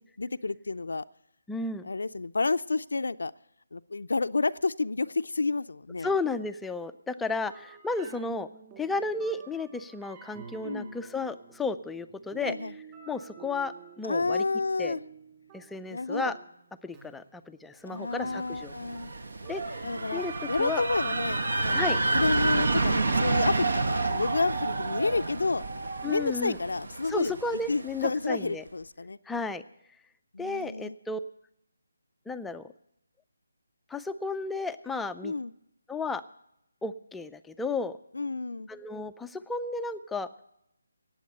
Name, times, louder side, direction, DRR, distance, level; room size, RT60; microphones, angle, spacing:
voice 1, 0.2-1.0 1.8-3.3 3.7-6.1 10.6-11.0 12.4-12.7 14.0-15.0 15.9-16.4 17.9-19.1 19.8-25.6 26.0-27.4 27.7-29.2 30.3-30.9 35.2-35.5 38.1-38.7, left 3 dB, 70° left, 11 dB, 0.4 m, -30 dB
voice 2, 1.5-1.9 6.0-8.5 8.8-12.5 13.1-14.4 14.8-15.0 15.5-16.4 16.8-18.7 19.5-19.8 20.1-20.3 20.6-20.8 21.7-22.0 26.0-26.6 27.1-28.6 29.3-29.6 30.4-31.2 32.3-32.7 33.9-35.3 35.9-36.2 36.8-38.0 38.7-40.3, left 3 dB, 5° left, 10 dB, 0.4 m, -33 dB
sound 1, 7.5-20.2, right 6 dB, 25° right, 2.7 m, -51 dB
sound 2, 18.3-28.1, right 3 dB, 70° right, 1.2 m, -29 dB
18.0 x 7.8 x 6.6 m, 0.79 s
figure-of-eight pair, 155°, 0 cm